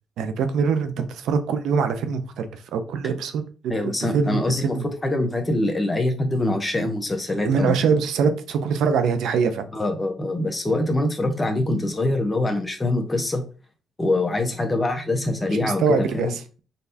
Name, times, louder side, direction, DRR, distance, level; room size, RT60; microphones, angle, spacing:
voice 1, 0.2-4.9 7.4-9.7 15.6-16.6, right 5 dB, 80° right, 9 dB, 0.6 m, -24 dB
voice 2, 3.7-4.8 5.0-7.8 9.7-13.4 14.0-16.3, left 2 dB, 20° left, 4 dB, 0.9 m, -24 dB
4.1 x 3.3 x 2.8 m, 0.35 s
cardioid pair, 90°, 0 cm